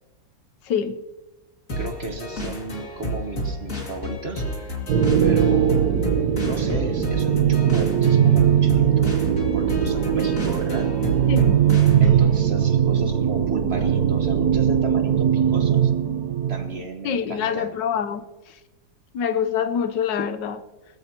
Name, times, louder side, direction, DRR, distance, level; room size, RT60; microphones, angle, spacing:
voice 1, 0.7-1.0 11.3-11.6 17.0-18.3 19.1-20.6, left 7 dB, 65° left, 1.4 m, -25 dB
sound 1, 1.7-12.4, equal, 40° left, 2.6 m, -31 dB
voice 2, 1.8-4.8 5.2-6.1 6.4-9.2 9.5-10.9 12.0-15.9 16.5-17.7, right 2 dB, 40° right, 1.1 m, -33 dB
sound 2, 4.9-16.9, right 9 dB, 60° right, 1.2 m, -20 dB
20.5 x 13.5 x 2.9 m
omnidirectional pair, 2.2 m